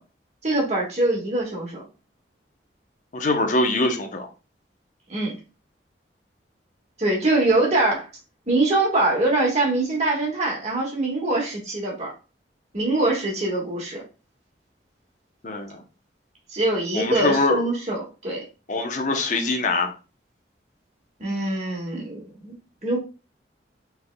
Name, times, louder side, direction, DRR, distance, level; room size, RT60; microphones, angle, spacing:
voice 1, 0.4-1.8 5.1-5.4 7.0-8.1 8.5-12.1 12.7-14.0 16.5-18.4 21.2-23.0, right 2 dB, 40° right, -2 dB, 1.6 m, -23 dB
voice 2, 3.1-4.3 15.4-15.8 16.9-17.6 18.7-19.9, left 2 dB, 45° left, 5 dB, 0.8 m, -23 dB
5.8 x 3.5 x 2.2 m, 0.31 s
head